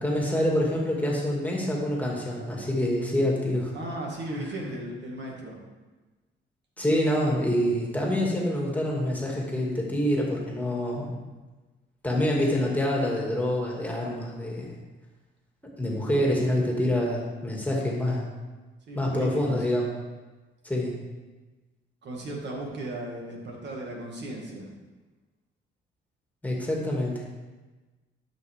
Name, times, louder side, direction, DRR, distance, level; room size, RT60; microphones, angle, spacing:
voice 1, 0.0-3.7 6.8-11.1 12.0-14.7 15.8-18.2 19.0-19.9 20.6-20.9 26.4-27.2, left 1 dB, 10° left, -2 dB, 2.2 m, -26 dB
voice 2, 3.7-5.6 18.9-19.7 22.0-24.7, right 1 dB, 60° right, -1 dB, 2.0 m, -36 dB
12.5 x 5.9 x 3.6 m, 1.2 s
cardioid pair, 90°, 20 cm